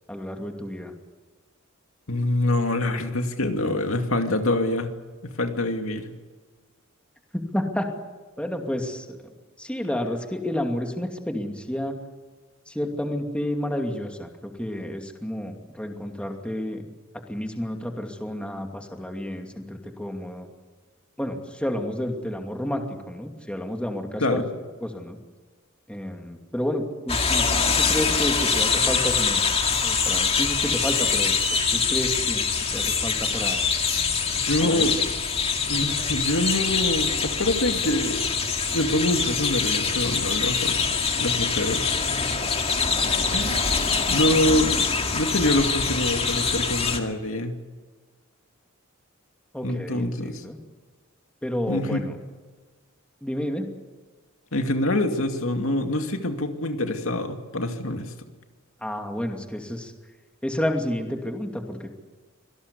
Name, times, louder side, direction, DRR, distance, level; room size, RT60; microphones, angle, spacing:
voice 1, 0.1-0.9 7.3-7.9 8.4-9.3 9.6-12.0 12.7-16.8 17.3-20.5 21.2-24.5 24.8-25.2 25.9-29.5 29.8-31.3 31.7-33.6 34.6-34.9 49.5-50.6 51.4-52.1 53.2-53.7 58.8-59.9 60.4-61.9, left 1 dB, 5° left, 3 dB, 2.5 m, -30 dB
voice 2, 2.1-4.9 5.2-6.0 24.2-24.4 34.4-34.9 35.7-38.2 38.7-40.9 41.2-42.2 43.3-47.5 49.6-50.5 51.7-52.0 54.5-58.1, left 1 dB, 70° left, 5 dB, 2.5 m, -25 dB
sound 1, 27.1-47.0, left 5 dB, 30° left, 2.2 m, -24 dB
25.5 x 18.5 x 8.3 m, 1.4 s
head